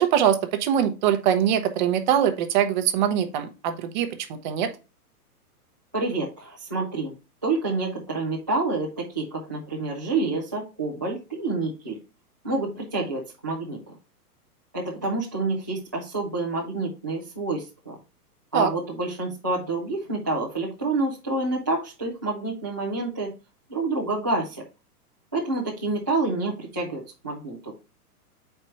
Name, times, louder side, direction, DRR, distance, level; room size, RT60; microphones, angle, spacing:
voice 1, 0.0-4.7 18.5-18.7, right 9 dB, 30° right, 8 dB, 0.7 m, -23 dB
voice 2, 5.9-7.1 7.4-12.0 12.4-13.8 14.7-18.0 18.5-23.3 23.7-24.6 25.3-27.7, right 3 dB, 15° right, -8 dB, 0.3 m, -28 dB
4.8 x 4.4 x 5.5 m, 0.30 s
hypercardioid pair, 155°, 46 cm